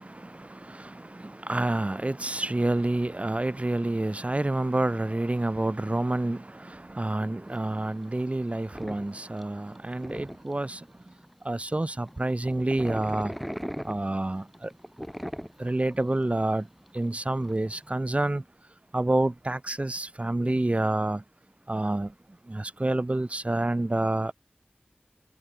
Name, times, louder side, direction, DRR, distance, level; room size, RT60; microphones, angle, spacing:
voice 1, 0.0-11.1 11.4-13.3 13.8-14.7 15.6-16.7 16.9-18.4 18.9-21.2 21.7-22.1 22.5-24.3, right 2 dB, 40° right, 1.2 m, -28 dB
sound 1, 7.5-17.9, equal, ahead, 3.6 m, -40 dB
wide cardioid pair, 45°, 3 cm